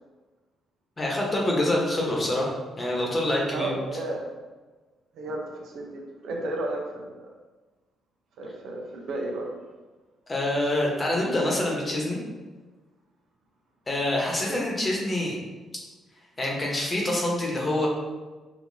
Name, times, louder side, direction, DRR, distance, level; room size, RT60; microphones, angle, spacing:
voice 1, 1.0-2.5 2.8-3.7 10.3-12.2 13.9-15.4 16.4-17.9, left 1 dB, 25° left, -2 dB, 1.1 m, -26 dB
voice 2, 3.5-4.2 5.1-7.3 8.4-9.5 14.4-14.6, right 2 dB, 75° right, 0 dB, 0.8 m, -33 dB
5.0 x 2.8 x 2.7 m, 1.3 s
cardioid pair, 90°, 0 cm